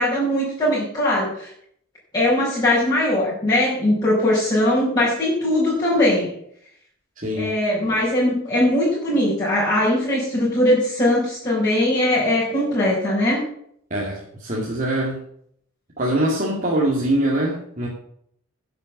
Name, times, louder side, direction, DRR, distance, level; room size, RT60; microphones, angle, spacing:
voice 1, 0.0-1.5 2.1-6.3 7.4-13.4, left 1 dB, 20° left, -11 dB, 5.6 m, -20 dB
voice 2, 7.2-7.5 13.9-15.2 16.0-17.9, right 1 dB, 35° right, -4 dB, 2.4 m, -23 dB
11.0 x 7.0 x 8.5 m, 0.67 s
head